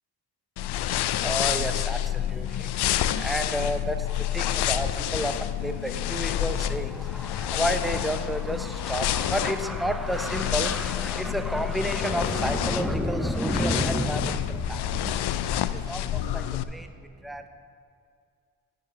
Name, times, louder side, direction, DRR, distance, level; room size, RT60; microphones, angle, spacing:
sound 1, 0.6-16.6, left 12 dB, 70° left, 0.5 m, -29 dB
voice 1, 0.6-17.5, equal, ahead, 7 dB, 0.7 m, -31 dB
11.0 x 5.4 x 5.3 m, 2.3 s
cardioid pair, 60°, 41 cm